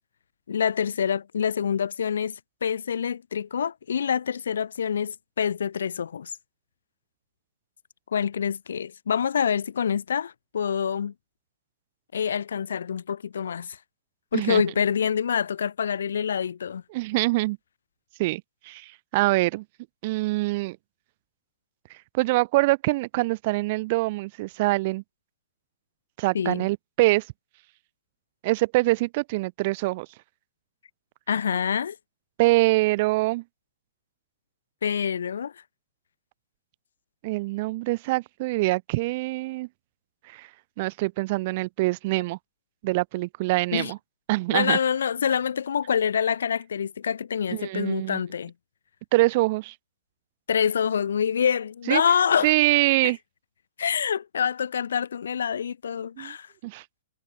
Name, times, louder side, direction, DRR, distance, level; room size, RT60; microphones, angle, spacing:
voice 1, 0.5-6.3 8.1-11.1 12.1-13.8 14.3-16.8 26.3-26.7 31.3-31.9 34.8-35.5 43.7-43.9 44.5-48.5 50.5-52.5 53.8-56.5, left 7 dB, 80° left, 1.5 m, -26 dB
voice 2, 16.9-17.6 18.2-19.6 20.0-20.8 22.1-25.0 26.2-27.3 28.4-30.1 32.4-33.4 37.2-39.7 40.3-40.5 40.8-42.4 42.8-44.0 44.3-44.8 47.5-48.2 49.1-49.7 51.9-52.0 52.4-53.2 56.2-56.3 56.6-56.8, right 21 dB, 50° right, 2.7 m, -24 dB
hypercardioid pair, 125°, 0 cm